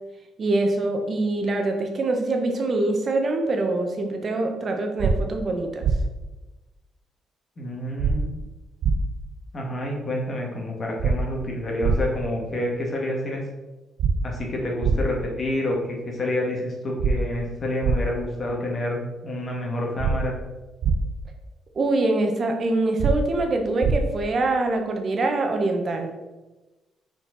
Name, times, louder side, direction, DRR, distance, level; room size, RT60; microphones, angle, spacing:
voice 1, 0.4-5.8 21.7-26.1, right 2 dB, 45° right, 4 dB, 1.1 m, -24 dB
sound 1, 5.0-5.1 5.8-6.0 8.0-8.1 8.8-9.0 11.0-11.1 11.8-12.0 14.0-14.1 14.8-15.0 17.0-17.1 17.8-18.0 20.0-20.1 20.8-21.0 23.0-23.1 23.8-24.0, right 5 dB, 75° right, 0.5 m, -21 dB
voice 2, 7.6-8.3 9.5-13.4 14.2-20.4, left 1 dB, 40° left, -1 dB, 1.9 m, -28 dB
5.8 x 4.6 x 4.1 m, 1.1 s
cardioid pair, 90°, 0 cm